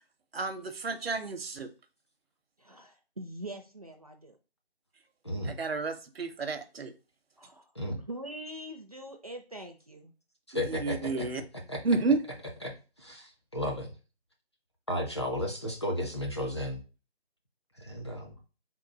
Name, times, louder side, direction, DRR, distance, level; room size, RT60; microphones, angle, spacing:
voice 1, 0.3-1.7 5.5-6.9 10.7-11.4 11.8-12.2, right 3 dB, 70° right, 9 dB, 0.7 m, -30 dB
voice 2, 2.6-4.4 7.4-7.7 8.1-10.1, right 1 dB, 35° right, 5 dB, 0.4 m, -43 dB
voice 3, 5.2-5.6 7.7-8.0 10.5-11.3 11.7-11.8 12.6-12.7 13.0-13.9 14.9-16.8 17.8-18.4, left 1 dB, 25° left, 0 dB, 0.5 m, -33 dB
3.7 x 2.2 x 4.4 m, 0.33 s
figure-of-eight pair, 155°, 32 cm